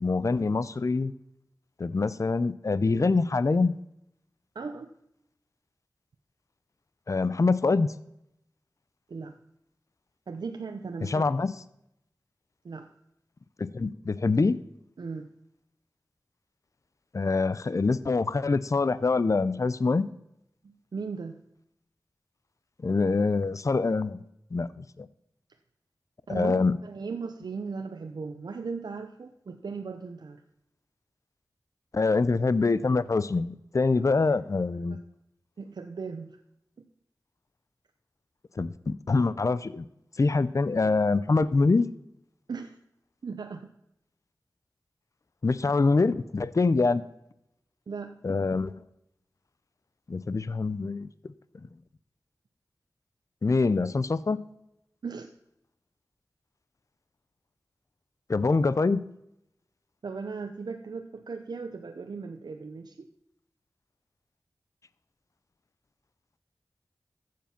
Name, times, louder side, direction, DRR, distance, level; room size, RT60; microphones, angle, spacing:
voice 1, 0.0-1.1 1.8-3.7 7.1-7.9 11.0-11.5 13.6-14.6 17.1-20.1 22.8-24.2 24.5-24.7 25.0-25.1 26.3-26.8 31.9-35.0 38.6-39.9 40.2-41.9 45.4-47.0 48.2-48.7 50.1-51.1 53.4-54.4 58.3-59.0, left 3 dB, 50° left, 16 dB, 0.5 m, -25 dB
voice 2, 4.5-4.9 9.1-9.4 10.3-11.2 12.6-12.9 15.0-15.3 20.6-21.4 26.3-30.4 33.9-34.3 35.6-36.4 36.8-36.9 42.5-42.8 43.2-43.7 47.9-48.2 55.0-55.3 60.0-63.1, right 4 dB, 85° right, 6 dB, 0.7 m, -37 dB
14.5 x 7.6 x 5.9 m, 0.80 s
wide cardioid pair, 50°, 7 cm